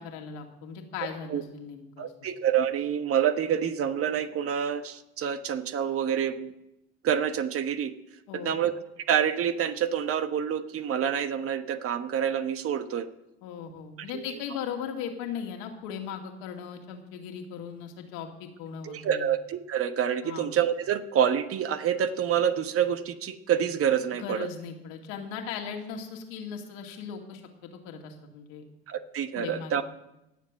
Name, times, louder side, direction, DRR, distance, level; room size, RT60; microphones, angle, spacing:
voice 1, 0.0-2.1 8.3-8.6 13.4-19.3 20.2-20.5 24.1-28.6 29.3-29.8, left 7 dB, 70° left, 2 dB, 2.4 m, -38 dB
voice 2, 2.0-6.5 7.0-8.0 8.3-8.7 9.1-13.1 14.1-14.2 18.8-24.5 28.9-29.8, right 9 dB, 45° right, 10 dB, 1.3 m, -27 dB
17.5 x 7.5 x 7.5 m, 0.91 s
hypercardioid pair, 65°, 30 cm